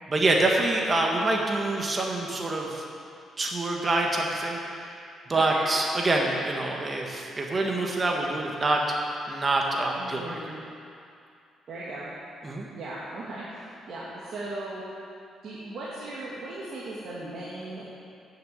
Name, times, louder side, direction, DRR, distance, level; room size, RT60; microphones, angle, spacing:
voice 1, 0.1-2.8 3.4-4.6 5.3-8.8 9.3-10.4 12.4-12.7, right 2 dB, 30° right, 0 dB, 1.5 m, -26 dB
voice 2, 5.3-5.7 9.9-10.5 11.7-12.1 12.7-14.9 15.4-17.8, right 2 dB, 60° right, -7 dB, 2.1 m, -37 dB
9.5 x 7.2 x 8.7 m, 2.5 s
cardioid pair, 90°, 0 cm